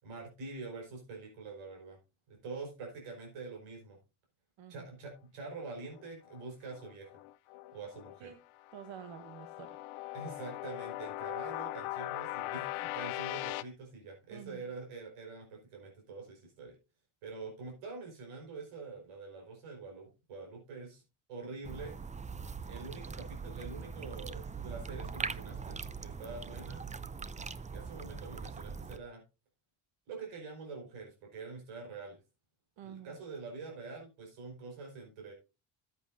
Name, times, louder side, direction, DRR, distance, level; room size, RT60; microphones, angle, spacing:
voice 1, 0.0-2.0 2.3-4.0 4.7-7.1 7.7-8.3 10.1-16.7 17.2-21.0 21.3-21.9 22.6-26.9 27.7-29.2 30.1-32.2 32.8-35.3, right 4 dB, 90° right, 0 dB, 5.0 m, -45 dB
sound 1, 5.9-8.2 8.6-13.6, left 17 dB, 85° left, 0.6 m, -40 dB
voice 2, 8.7-9.8 14.3-14.7 32.8-33.2, right 9 dB, 65° right, 8 dB, 1.1 m, -48 dB
sound 2, 21.6-29.0, right 5 dB, 15° right, 0.4 m, -41 dB
13.5 x 8.3 x 2.7 m, 0.28 s
cardioid pair, 80°, 48 cm